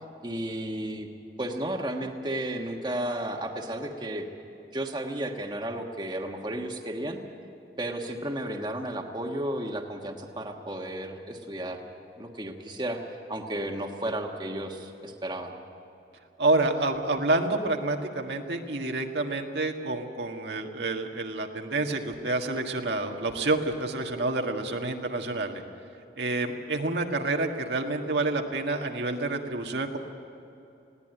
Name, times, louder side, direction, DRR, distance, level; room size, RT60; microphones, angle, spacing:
voice 1, 0.2-1.1 1.4-4.3 4.7-7.2 7.8-11.8 12.2-13.0 13.3-15.5, right 1 dB, 25° right, 2 dB, 1.4 m, -33 dB
voice 2, 16.4-25.6 26.2-30.0, right 2 dB, 75° right, 3 dB, 1.6 m, -28 dB
20.0 x 17.0 x 9.2 m, 2.7 s
head